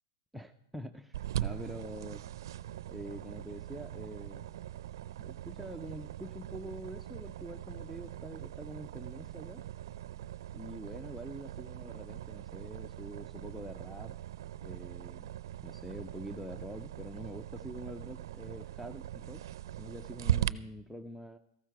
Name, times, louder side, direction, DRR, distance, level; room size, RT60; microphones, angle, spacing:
voice 1, 0.3-2.3 2.9-4.5 5.2-9.6 10.5-14.2 14.5-15.3 15.6-19.4 19.8-21.4, equal, ahead, 5 dB, 0.4 m, -45 dB
sound 1, 1.1-20.5, right 12 dB, 70° right, 0.4 m, -40 dB
14.0 x 12.5 x 4.6 m, 0.75 s
supercardioid pair, 145°, 2 cm